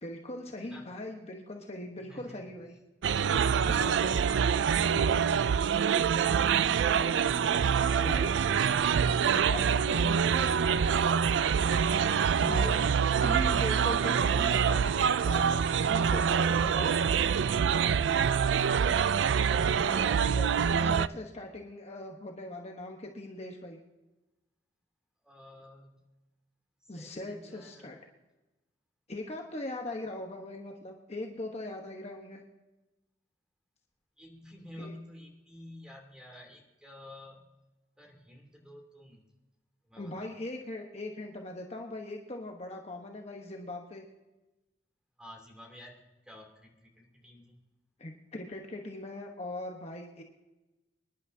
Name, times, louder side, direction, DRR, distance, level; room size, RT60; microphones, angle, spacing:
voice 1, 0.0-2.7 3.6-4.5 4.9-5.7 6.9-7.2 8.0-8.3 9.3-10.5 12.4-12.9 13.2-17.1 19.8-23.8 26.9-28.0 29.1-32.4 34.8-34.9 40.0-44.0 48.0-50.2, left 1 dB, 35° left, 1 dB, 1.2 m, -40 dB
voice 2, 2.0-2.4 4.5-4.9 7.5-8.3 11.9-12.1 18.6-19.4 25.2-26.0 26.8-27.9 34.2-37.4 38.0-39.3 39.8-40.3 45.2-46.0 46.2-47.6, left 1 dB, 5° right, 0 dB, 3.0 m, -50 dB
sound 1, 3.0-21.1, right 7 dB, 80° right, 0.4 m, -25 dB
25.5 x 11.0 x 2.8 m, 1.1 s
head